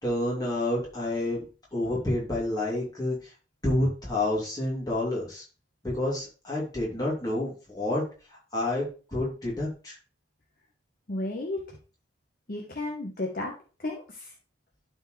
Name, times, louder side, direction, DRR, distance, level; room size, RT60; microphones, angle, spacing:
voice 1, 0.0-3.3 3.6-5.4 5.8-10.0, left 1 dB, 20° left, -5 dB, 2.9 m, -29 dB
voice 2, 11.1-11.8 12.5-13.5 13.8-14.3, left 2 dB, 50° left, 0 dB, 1.1 m, -33 dB
12.0 x 4.5 x 3.3 m, 0.36 s
head